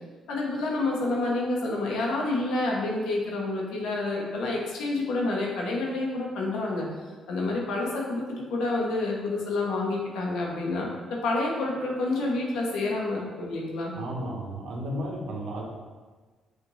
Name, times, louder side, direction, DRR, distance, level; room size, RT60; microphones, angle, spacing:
voice 1, 0.3-6.8 7.3-13.9, left 2 dB, 85° left, -2 dB, 0.9 m, -28 dB
voice 2, 13.9-15.6, right 1 dB, 80° right, -3 dB, 0.9 m, -33 dB
6.3 x 2.6 x 3.1 m, 1.4 s
cardioid pair, 90°, 0 cm